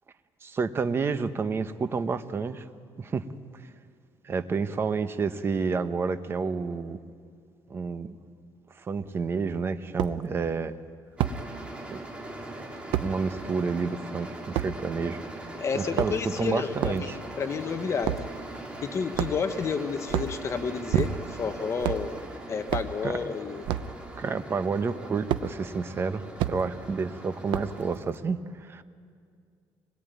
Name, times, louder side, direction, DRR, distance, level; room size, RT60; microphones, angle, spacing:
voice 1, 0.4-2.6 3.0-3.3 4.2-7.0 7.7-8.2 8.8-10.8 11.9-12.0 13.0-15.2 15.7-17.2 23.0-23.1 24.2-28.8, right 5 dB, 30° right, 10 dB, 1.1 m, -29 dB
sound 1, 9.0-9.1 10.0-10.2 11.2-11.4 12.9-13.1 14.5-14.7 15.8-16.3 16.8-17.0 18.0-18.3 19.1-19.6 20.0-20.4 20.9-21.4 21.8-22.1 22.7-22.9 23.6-23.9 25.3-25.5 26.4-26.6 27.5-27.8, right 12 dB, 90° right, 0.9 m, -28 dB
sound 2, 11.2-28.0, right 1 dB, 15° right, 3.2 m, -41 dB
voice 2, 15.6-18.2 18.8-22.1 22.5-23.6, left 5 dB, 35° left, 8 dB, 1.3 m, -30 dB
26.0 x 20.5 x 9.4 m, 2.2 s
cardioid pair, 130°, 8 cm